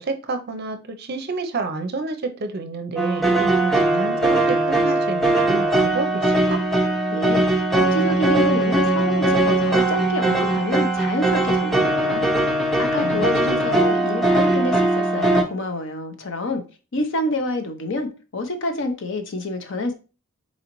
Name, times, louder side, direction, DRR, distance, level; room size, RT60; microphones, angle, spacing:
voice 1, 0.0-6.6 13.0-13.7, right 3 dB, 45° right, 0.5 m, -29 dB
sound 1, 3.0-15.4, right 2 dB, ahead, 0.5 m, -20 dB
voice 2, 7.1-16.6 16.9-19.9, left 1 dB, 55° left, 0.7 m, -27 dB
4.1 x 3.8 x 2.9 m
head